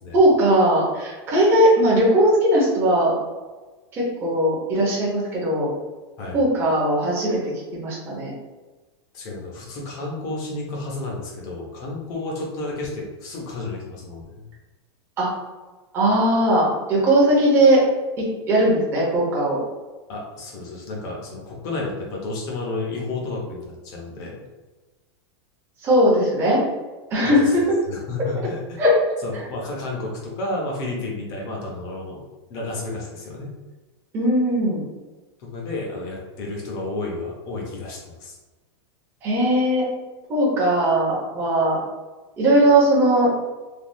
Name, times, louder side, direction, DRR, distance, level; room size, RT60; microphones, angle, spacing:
voice 1, 0.1-3.2 3.9-5.7 6.3-8.3 15.2-15.3 15.9-17.8 18.2-19.6 25.8-26.6 27.1-27.6 28.8-29.0 29.3-29.4 34.1-34.9 39.2-39.8 40.3-41.8 42.4-43.3, right 1 dB, 15° right, -5 dB, 0.6 m, -19 dB
voice 2, 9.1-14.4 20.1-24.4 27.2-27.6 27.9-28.8 29.2-32.2 32.5-33.5 35.4-38.4, left 2 dB, 25° left, -2 dB, 0.5 m, -31 dB
3.3 x 2.2 x 2.5 m, 1.2 s
supercardioid pair, 180°, 14 cm